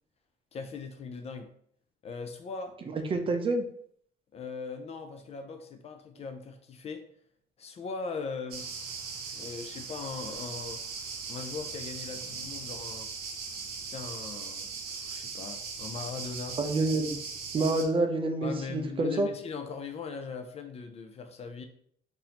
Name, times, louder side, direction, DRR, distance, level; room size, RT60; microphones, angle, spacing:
voice 1, 0.5-1.5 2.0-2.8 4.3-7.1 7.6-8.7 9.3-10.8 11.3-13.1 13.8-16.6 18.4-21.7, left 5 dB, 40° left, 6 dB, 0.4 m, -39 dB
voice 2, 2.9-3.6 16.6-17.2 17.5-19.3, right 2 dB, 30° right, 5 dB, 0.5 m, -27 dB
sound 1, 8.5-17.8, right 5 dB, 70° right, 0.7 m, -39 dB
4.0 x 2.6 x 2.8 m, 0.66 s
cardioid pair, 110°, 17 cm